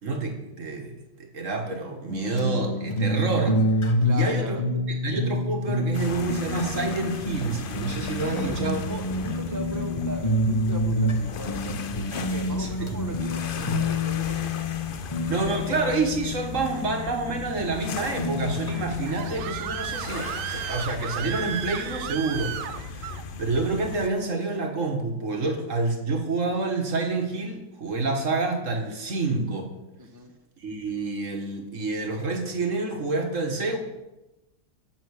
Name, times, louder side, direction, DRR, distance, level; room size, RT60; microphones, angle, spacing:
voice 1, 0.0-0.9 1.2-3.6 4.1-4.6 4.9-8.8 12.6-12.9 15.3-22.6 22.9-23.1 23.4-29.7 30.6-33.8, right 3 dB, 50° right, 3 dB, 1.9 m, -28 dB
sound 1, 2.1-19.7, left 1 dB, 20° left, 1.0 m, -28 dB
voice 2, 4.0-4.6 8.2-14.7 30.0-30.3, right 1 dB, 15° right, 4 dB, 0.8 m, -39 dB
sound 2, 5.9-24.1, left 4 dB, 65° left, 0.5 m, -37 dB
Screaming, 18.7-23.2, right 11 dB, 70° right, 0.8 m, -34 dB
10.5 x 8.2 x 6.5 m, 0.97 s
omnidirectional pair, 1.8 m